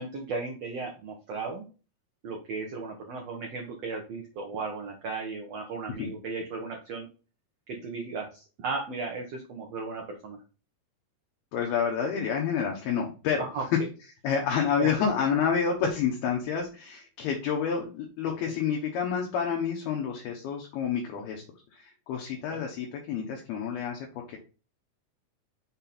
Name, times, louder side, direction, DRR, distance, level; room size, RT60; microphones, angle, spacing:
voice 1, 0.0-1.7 2.2-7.1 7.7-10.4 13.4-13.6 14.8-14.9 22.5-22.6, right 4 dB, 85° right, 0 dB, 1.4 m, -35 dB
voice 2, 11.5-13.7 14.2-21.4 21.7-24.4, left 7 dB, 75° left, 0 dB, 2.9 m, -29 dB
6.8 x 4.3 x 4.1 m, 0.33 s
omnidirectional pair, 4.7 m